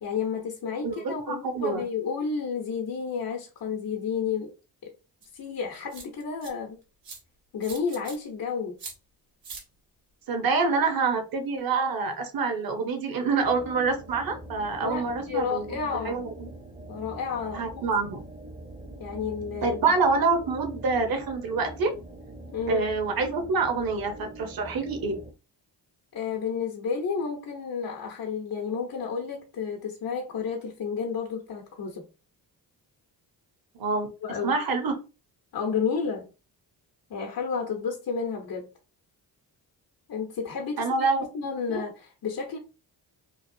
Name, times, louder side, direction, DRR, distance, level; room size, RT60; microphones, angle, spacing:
voice 1, 0.0-4.5 5.3-6.8 7.5-8.7 14.8-16.2 16.9-17.8 19.0-19.8 22.5-22.9 26.1-32.0 34.2-34.5 35.5-36.3 37.1-38.7 40.1-42.6, left 6 dB, 55° left, 0.9 m, -31 dB
voice 2, 0.8-1.8 10.3-16.5 17.5-18.2 19.6-21.9 22.7-25.1 33.7-34.1 34.4-34.9 40.8-41.2 41.7-41.8, right 4 dB, 55° right, 0.9 m, -26 dB
sound 1, 5.2-5.3 5.9-6.5 7.0-7.2 7.6-8.2 8.8-8.9 9.4-9.6, right 4 dB, 85° right, 1.2 m, -41 dB
sound 2, 13.4-25.3, right 1 dB, 10° right, 0.7 m, -44 dB
3.1 x 2.4 x 2.7 m
cardioid pair, 65°, 43 cm